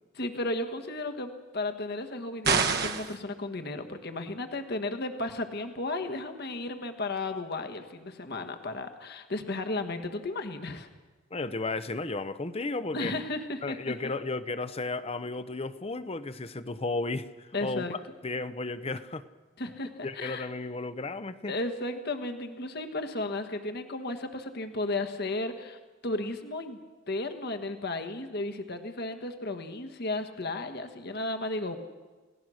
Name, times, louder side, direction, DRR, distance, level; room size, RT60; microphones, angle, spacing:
voice 1, 0.1-10.9 12.9-13.8 17.5-18.0 19.6-20.5 21.5-26.8 27.1-31.8, left 2 dB, 55° left, 7 dB, 1.5 m, -34 dB
sound 1, 2.4-3.2, right 5 dB, 55° right, 1.4 m, -26 dB
voice 2, 11.3-13.2 13.6-18.0 18.2-19.2 20.0-21.5, left 3 dB, 30° left, 13 dB, 0.8 m, -34 dB
29.0 x 17.5 x 6.4 m, 1.3 s
head